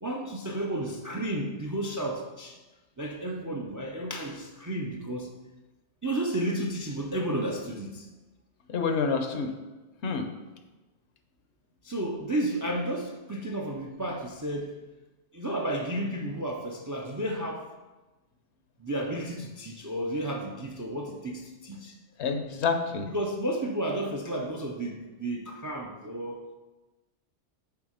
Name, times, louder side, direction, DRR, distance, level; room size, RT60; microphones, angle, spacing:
voice 1, 0.0-2.6 3.0-5.3 6.0-8.1 11.8-14.8 15.3-17.7 18.8-21.9 23.1-26.5, right 1 dB, 30° right, 2 dB, 0.3 m, -32 dB
voice 2, 8.7-9.5 10.0-10.2 22.2-23.1, left 5 dB, 70° left, 6 dB, 1.0 m, -28 dB
8.3 x 3.6 x 4.9 m, 1.2 s
omnidirectional pair, 1.2 m